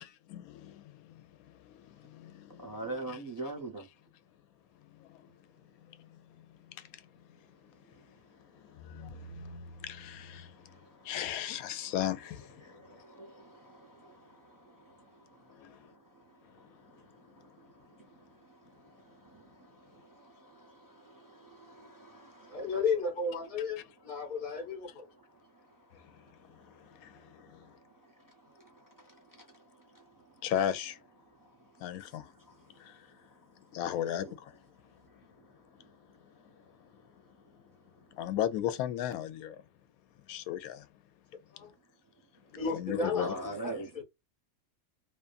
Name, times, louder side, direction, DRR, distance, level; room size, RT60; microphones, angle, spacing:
voice 1, 0.3-3.2 5.0-5.2 5.9-6.0 6.8-7.0 8.7-10.6 11.0-13.0 15.5-15.8 26.9-27.7 30.4-31.0 31.8-32.3 32.8-33.1 33.7-34.6 38.1-39.6 40.3-40.9 42.7-43.3, left 10 dB, 80° left, 1.0 m, -36 dB
voice 2, 2.6-3.9 12.6-15.0 19.2-19.4 20.1-22.6 28.6-28.7 29.0-29.1 29.4-29.5 43.2-43.9, right 2 dB, 30° right, 0.4 m, -43 dB
voice 3, 22.5-23.8 24.0-25.0 41.5-41.7 42.5-43.3 43.6-44.0, left 4 dB, 40° left, 1.2 m, -33 dB
2.7 x 2.4 x 2.3 m
omnidirectional pair, 1.5 m